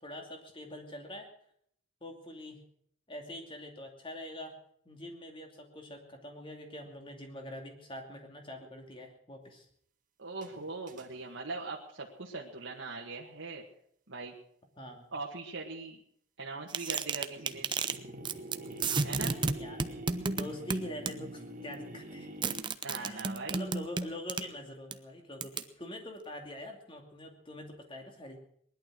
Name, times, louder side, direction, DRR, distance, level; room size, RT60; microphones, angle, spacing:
voice 1, 0.0-1.3 2.0-2.6 3.1-4.6 4.8-9.7 14.8-15.1 19.4-19.9 20.3-22.3 22.9-28.4, left 1 dB, 25° left, 3 dB, 2.6 m, -44 dB
voice 2, 10.2-13.6 14.1-14.3 15.1-16.0 16.4-17.7 19.0-19.4 22.8-23.6, right 3 dB, 65° right, -2 dB, 1.8 m, -41 dB
sound 1, 10.4-11.3 17.2-22.6, right 1 dB, 40° right, 1.8 m, -45 dB
sound 2, 16.7-18.0 18.2-18.5 18.8-21.1 22.4-24.4 24.9-25.0 25.4-25.6, right 4 dB, 20° right, 0.6 m, -32 dB
19.5 x 11.5 x 6.3 m, 0.67 s
head